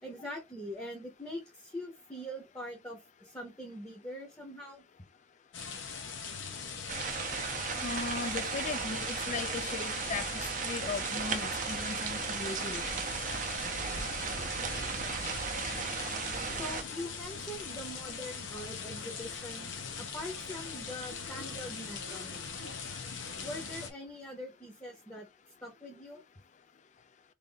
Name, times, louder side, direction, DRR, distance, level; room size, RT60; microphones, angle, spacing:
voice 1, 0.0-4.8 16.0-22.4 23.4-25.3 25.6-26.2, equal, 10° left, 0.8 m, -43 dB
sound 1, 5.5-23.9, left 5 dB, 80° left, 0.8 m, -41 dB
sound 2, 6.9-16.8, right 6 dB, 40° right, 0.5 m, -36 dB
voice 2, 7.8-12.8, left 4 dB, 35° left, 0.3 m, -38 dB
3.4 x 2.6 x 3.9 m
head